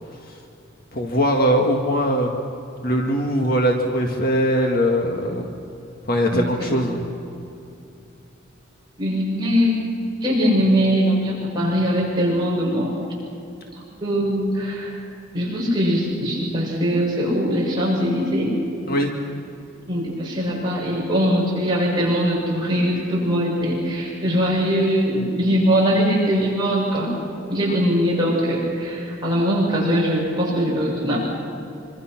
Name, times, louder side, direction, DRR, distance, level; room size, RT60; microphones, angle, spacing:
voice 1, 0.9-2.4 2.8-5.5 6.0-7.0 18.9-19.1 27.7-27.8, equal, 45° left, 2 dB, 1.8 m, -21 dB
voice 2, 6.3-6.8 9.0-9.8 10.2-13.0 14.0-15.0 15.3-18.5 19.9-27.1 27.5-31.2, equal, 20° right, -5 dB, 7.0 m, -21 dB
26.0 x 25.0 x 6.0 m, 2.8 s
head